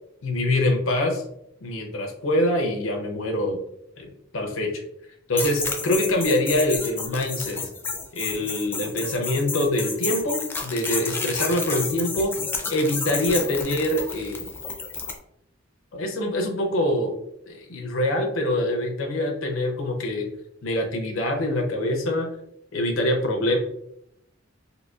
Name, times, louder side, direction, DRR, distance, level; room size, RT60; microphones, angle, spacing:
voice 1, 0.2-1.2 1.6-3.6 4.0-4.8 5.3-7.6 8.1-12.3 12.7-14.5 15.9-17.2 17.5-20.3 20.6-22.3 22.7-23.6, left 1 dB, 75° left, 2 dB, 0.6 m, -24 dB
sound 1, 5.4-15.2, left 4 dB, 10° left, 0.4 m, -31 dB
3.9 x 2.7 x 2.3 m, 0.77 s
head